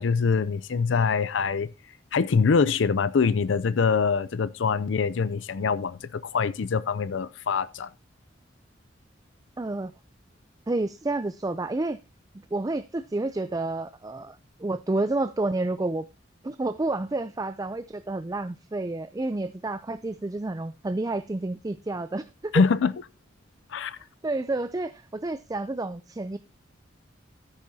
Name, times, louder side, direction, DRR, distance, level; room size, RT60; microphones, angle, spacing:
voice 1, 0.0-1.7 2.1-7.9 22.5-22.9 23.7-24.0, left 5 dB, 80° left, 0.5 m, -24 dB
voice 2, 9.6-9.9 10.7-12.0 12.5-16.1 16.4-22.6 24.2-26.4, right 2 dB, 20° right, 0.4 m, -30 dB
13.0 x 9.8 x 2.8 m
head